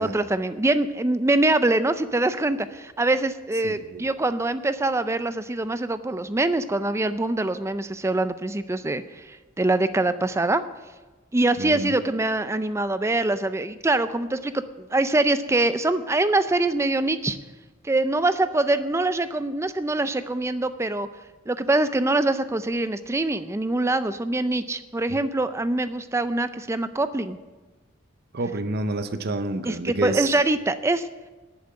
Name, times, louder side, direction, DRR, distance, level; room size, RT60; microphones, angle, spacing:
voice 1, 0.0-10.6 11.3-17.4 17.8-21.1 21.5-27.4 29.7-31.1, right 2 dB, 15° right, 12 dB, 0.4 m, -24 dB
voice 2, 3.6-4.1 11.6-11.9 25.1-25.2 28.3-30.3, right 2 dB, 50° right, 10 dB, 0.7 m, -29 dB
11.5 x 7.1 x 8.9 m, 1.2 s
head